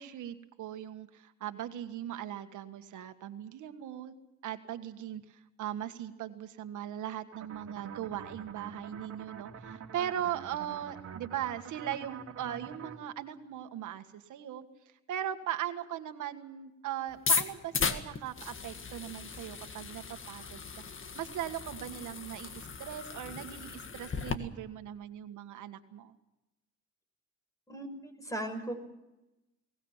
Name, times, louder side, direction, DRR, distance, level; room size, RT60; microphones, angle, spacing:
voice 1, 0.0-4.1 4.4-14.7 15.1-26.1, right 11 dB, 75° right, 8 dB, 1.7 m, -39 dB
sound 1, 7.3-13.0, right 7 dB, 55° right, 2.6 m, -46 dB
sound 2, 17.1-24.4, left 5 dB, 40° left, 2.0 m, -36 dB
voice 2, 27.7-28.7, right 1 dB, 10° left, 8 dB, 5.7 m, -37 dB
22.5 x 19.0 x 7.3 m, 0.96 s
cardioid pair, 90°, 30 cm